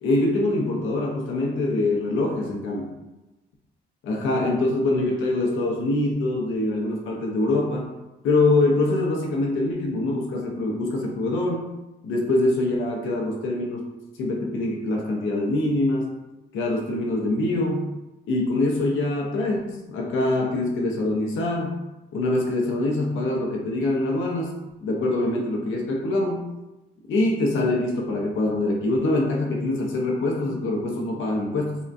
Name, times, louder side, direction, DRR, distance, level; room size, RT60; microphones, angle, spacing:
voice 1, 0.0-2.9 4.0-7.9 8.2-11.7 12.0-13.8 14.2-16.1 16.5-17.9 18.3-21.8 22.1-24.5 24.8-26.5 27.1-31.8, left 2 dB, 80° left, 0 dB, 0.7 m, -24 dB
3.7 x 2.1 x 2.5 m, 0.99 s
cardioid pair, 90°, 20 cm